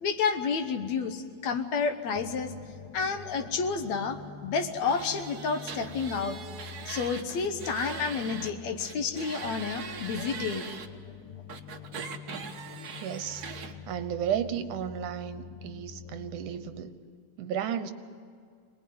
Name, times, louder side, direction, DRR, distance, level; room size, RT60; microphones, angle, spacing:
voice 1, 0.0-2.5 2.9-6.4 6.9-10.7, left 5 dB, 65° left, 7 dB, 2.4 m, -30 dB
sound 1, 2.2-16.8, left 8 dB, 85° left, 2.8 m, -46 dB
sound 2, 4.9-8.5 8.8-10.9 11.5-13.7, right 6 dB, 55° right, 1.1 m, -41 dB
voice 2, 13.0-16.9 17.4-17.9, right 9 dB, 80° right, 11 dB, 2.5 m, -34 dB
25.5 x 20.0 x 9.5 m, 2.2 s
omnidirectional pair, 3.6 m